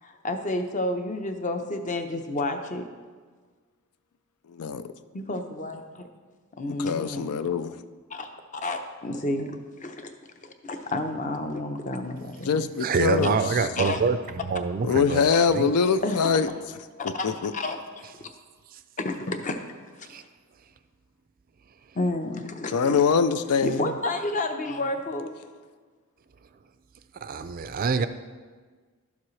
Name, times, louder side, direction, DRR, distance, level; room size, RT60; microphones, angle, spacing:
voice 1, 0.0-2.9 5.1-6.0 6.6-7.4 8.1-10.1 10.4-12.6 13.8-14.0 16.0-16.3 17.0-18.3 19.0-19.6 20.0-20.3 21.9-23.0 23.6-25.4, left 2 dB, 35° left, 0.7 m, -31 dB
voice 2, 4.5-4.9 6.7-7.8 12.5-13.4 14.8-16.5 17.2-17.5 22.7-23.9, left 5 dB, 85° left, 0.4 m, -23 dB
voice 3, 12.8-14.2 14.4-15.7 18.7-18.8 20.1-20.2 27.2-28.1, right 5 dB, 40° right, 0.3 m, -26 dB
12.0 x 7.3 x 3.2 m
head